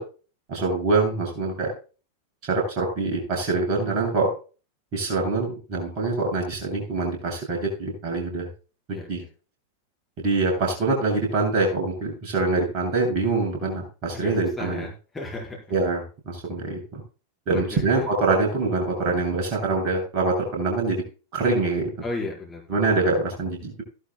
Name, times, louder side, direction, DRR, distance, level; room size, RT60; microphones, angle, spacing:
voice 1, 0.5-1.7 2.5-4.3 4.9-8.5 9.1-9.2 10.2-14.8 15.7-17.0 17.5-21.0 21.3-21.9 22.7-23.8, right 3 dB, 40° right, 0 dB, 7.6 m, -24 dB
voice 2, 8.9-9.3 14.1-14.9 15.1-15.6 17.5-17.8 22.0-22.6, left 2 dB, 10° left, -2 dB, 4.9 m, -34 dB
17.5 x 11.5 x 2.3 m, 0.35 s
figure-of-eight pair, 90°, 0 cm